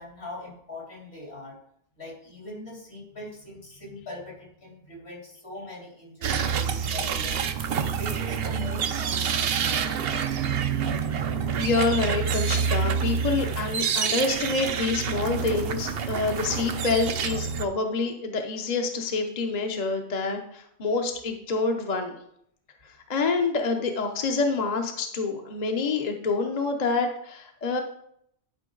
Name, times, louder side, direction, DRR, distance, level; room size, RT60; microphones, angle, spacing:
voice 1, 0.0-1.5 2.0-10.3, left 2 dB, 80° left, -3 dB, 3.3 m, -41 dB
sound 1, 6.2-17.7, right 7 dB, 70° right, 0.8 m, -27 dB
voice 2, 11.6-22.2 23.1-27.8, left 4 dB, 45° left, 4 dB, 0.8 m, -27 dB
11.5 x 4.9 x 3.8 m, 0.71 s
omnidirectional pair, 1.1 m